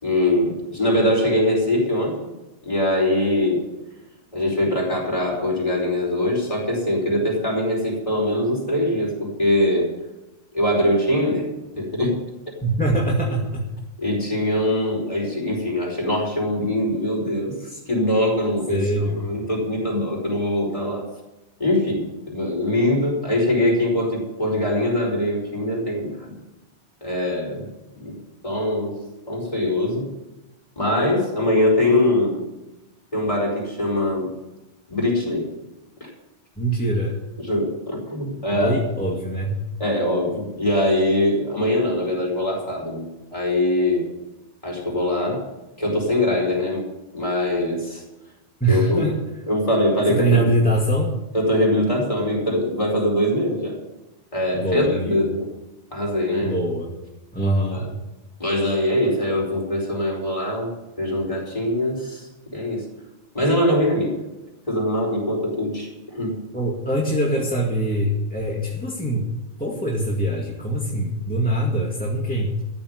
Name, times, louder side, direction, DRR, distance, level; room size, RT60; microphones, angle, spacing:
voice 1, 0.0-2.3 2.6-3.7 4.3-9.9 10.5-11.5 11.8-12.2 14.0-18.9 19.1-21.0 21.6-26.3 27.0-27.6 28.0-28.1 28.4-29.0 29.3-30.1 30.8-32.4 33.1-34.3 34.9-35.5 36.0-36.1 37.4-38.8 39.8-44.1 44.6-45.5 45.8-46.8 47.1-48.0 48.7-49.0 49.5-50.4 51.3-53.8 54.3-55.5 55.9-56.5 57.7-57.9 58.4-60.7 61.0-62.8 63.3-64.1 64.7-66.4, left 1 dB, 30° left, -3 dB, 5.0 m, -22 dB
voice 2, 12.6-13.6 18.7-19.3 36.6-37.1 38.5-39.6 48.6-49.2 50.1-51.1 54.5-55.2 56.4-56.9 57.3-57.8 66.5-69.2 69.6-72.6, right 1 dB, 5° left, -3 dB, 2.1 m, -23 dB
14.0 x 7.1 x 9.7 m, 1.0 s
omnidirectional pair, 1.2 m